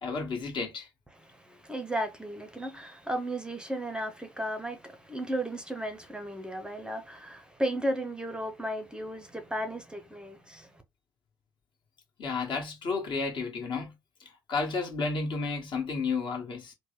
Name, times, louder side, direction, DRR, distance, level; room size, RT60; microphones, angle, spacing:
voice 1, 0.0-0.9 12.2-13.9 14.5-16.7, left 4 dB, 45° left, 1.3 m, -32 dB
voice 2, 1.1-10.8, right 1 dB, 10° right, 0.7 m, -35 dB
3.3 x 2.1 x 3.1 m
figure-of-eight pair, 50°, 11 cm